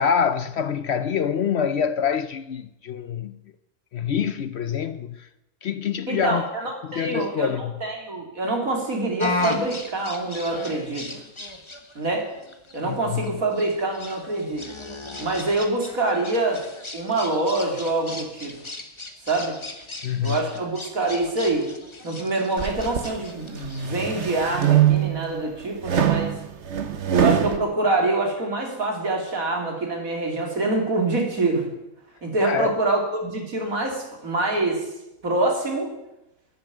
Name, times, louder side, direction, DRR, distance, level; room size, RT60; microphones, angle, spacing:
voice 1, 0.0-3.4 3.9-5.3 5.6-6.4 6.8-7.7 12.8-13.3 20.0-20.4 32.4-32.8, left 7 dB, 60° left, 0.8 m, -25 dB
voice 2, 6.1-7.5 7.8-11.1 12.0-12.3 12.7-14.7 15.2-16.6 16.9-18.5 19.3-19.6 20.2-21.7 22.0-26.3 27.1-31.7 32.2-34.8 35.2-35.9, right 2 dB, 85° right, 3.6 m, -25 dB
sound 1, 9.2-24.3, left 2 dB, 20° left, 1.4 m, -36 dB
sound 2, 22.6-23.1 23.6-25.3 25.8-27.6, right 10 dB, 55° right, 1.4 m, -22 dB
12.5 x 11.0 x 9.4 m
omnidirectional pair, 1.4 m